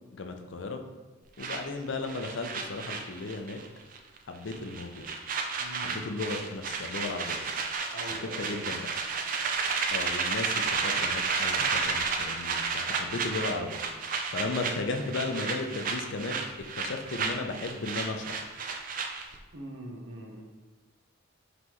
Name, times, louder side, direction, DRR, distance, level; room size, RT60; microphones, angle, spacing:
voice 1, 0.1-0.8 1.4-3.6 4.3-5.1 5.8-7.4 8.1-8.8 9.9-13.8 14.3-16.4 16.7-18.5, left 3 dB, 60° left, 5 dB, 0.4 m, -35 dB
sound 1, 1.4-3.7 3.9-4.2 4.5-19.4, right 5 dB, 40° right, 0.4 m, -32 dB
voice 2, 5.6-6.3 7.9-8.7 19.5-20.4, right 1 dB, 65° right, 1 dB, 0.7 m, -43 dB
5.4 x 3.0 x 3.0 m, 1.3 s
head